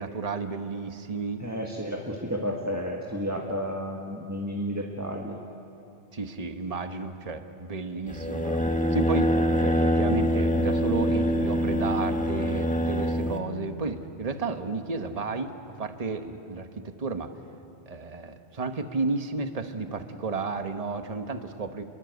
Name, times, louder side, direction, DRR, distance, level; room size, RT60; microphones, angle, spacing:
voice 1, 0.0-1.4 6.1-8.6 8.9-17.3 17.9-21.8, right 3 dB, 35° right, 7 dB, 1.2 m, -32 dB
voice 2, 1.4-5.4, equal, 15° right, -1 dB, 1.8 m, -32 dB
sound 1, 8.1-13.4, equal, 5° left, 1.5 m, -25 dB
29.0 x 22.5 x 8.1 m, 2.7 s
omnidirectional pair, 1.2 m